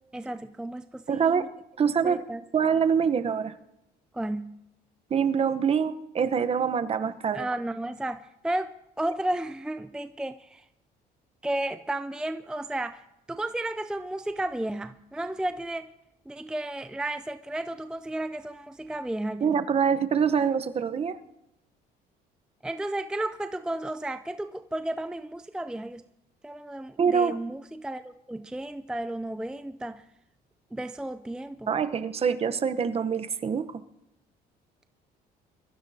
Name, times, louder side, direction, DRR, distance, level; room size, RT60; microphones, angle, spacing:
voice 1, 0.1-1.5 1.8-2.4 4.1-4.6 7.3-10.7 11.4-13.0 13.3-15.9 16.3-19.5 22.6-26.0 26.4-30.0 30.7-31.8, right 1 dB, 5° right, 11 dB, 0.4 m, -33 dB
voice 2, 1.1-1.5 1.8-2.2 2.5-3.5 5.1-7.5 19.4-21.2 27.0-27.4 31.7-33.7, right 6 dB, 35° right, 10 dB, 0.9 m, -25 dB
24.0 x 14.5 x 2.8 m, 0.86 s
cardioid pair, 110°, 17 cm